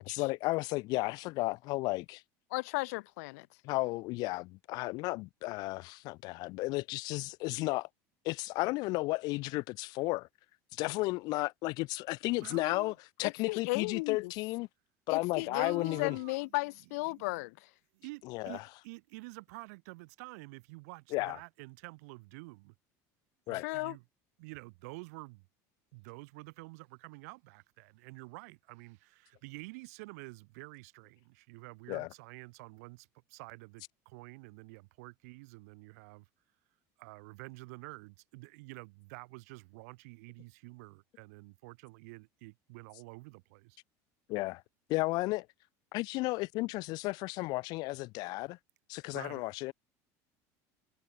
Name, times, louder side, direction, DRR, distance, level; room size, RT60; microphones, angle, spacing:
voice 1, 0.0-2.2 3.6-7.9 8.2-10.3 10.7-14.7 15.1-16.2 18.2-18.6 21.1-21.4 23.5-23.6 31.9-32.1 44.3-44.6 44.9-45.5 45.9-48.6 48.9-49.7, left 22 dB, 55° left, 1.3 m, -33 dB
voice 2, 2.5-3.5 13.2-14.3 15.1-17.6 23.5-24.0, left 25 dB, 90° left, 0.6 m, -35 dB
voice 3, 12.4-12.9 15.4-16.6 17.1-17.4 17.9-22.7 23.5-24.0 24.4-25.4 25.9-36.2 37.0-43.8 49.1-49.4, right 27 dB, 80° right, 4.9 m, -49 dB
cardioid pair, 160°, 8 cm